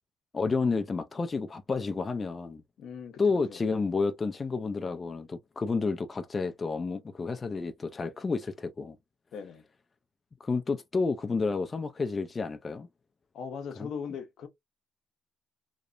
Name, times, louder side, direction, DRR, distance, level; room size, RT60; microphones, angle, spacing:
voice 1, 0.3-2.6 3.2-9.0 10.4-12.9 13.8-13.9, left 4 dB, 30° left, 0.4 m, -30 dB
voice 2, 2.8-3.6 9.3-9.6 13.3-14.5, left 6 dB, 75° left, 0.6 m, -39 dB
2.9 x 2.0 x 2.5 m
cardioid pair, 90°, 0 cm